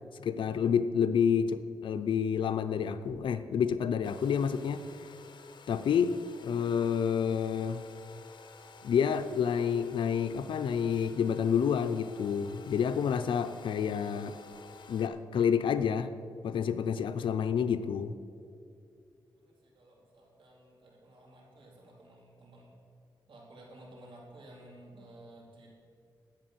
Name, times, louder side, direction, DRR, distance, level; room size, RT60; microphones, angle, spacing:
voice 1, 0.2-4.8 5.7-6.2 6.4-7.8 8.8-14.4 14.9-16.1 16.4-18.1, left 7 dB, 90° left, 11 dB, 0.6 m, -29 dB
Domestic sounds home sounds, 4.0-15.1, left 5 dB, 70° left, 1.0 m, -53 dB
voice 2, 19.4-22.7 23.3-25.7, right 1 dB, 80° right, -3 dB, 3.7 m, -54 dB
12.0 x 8.8 x 7.8 m, 2.4 s
wide cardioid pair, 95°, 8 cm